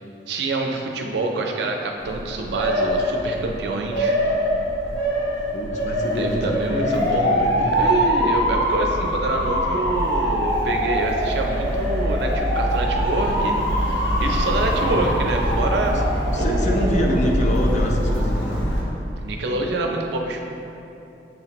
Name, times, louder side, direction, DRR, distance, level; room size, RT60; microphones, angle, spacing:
voice 1, 0.3-4.2 6.2-7.5 7.8-13.6 13.9-17.1 19.2-20.4, right 2 dB, 65° right, 2 dB, 0.4 m, -26 dB
Motor vehicle (road) / Siren, 2.0-18.8, equal, 70° left, 0.9 m, -23 dB
voice 2, 5.5-7.7 16.3-18.6, left 1 dB, 40° left, 0 dB, 0.4 m, -26 dB
7.2 x 2.5 x 2.9 m, 2.9 s
head